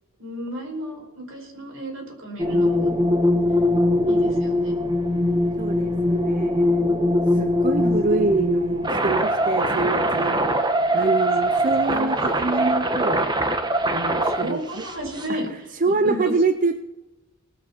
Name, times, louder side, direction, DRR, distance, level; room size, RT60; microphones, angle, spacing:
voice 1, 0.2-2.9 4.1-4.8 7.8-7.9 11.5-12.2 14.2-16.3, equal, 75° right, 1 dB, 4.7 m, -33 dB
sound 1, 2.4-15.3, equal, 20° right, 1.1 m, -22 dB
voice 2, 5.6-6.8 7.3-10.4 10.9-13.3 13.9-14.8 15.3-15.4 15.8-16.8, right 3 dB, 40° right, 10 dB, 0.5 m, -25 dB
18.5 x 7.3 x 7.2 m, 0.99 s
head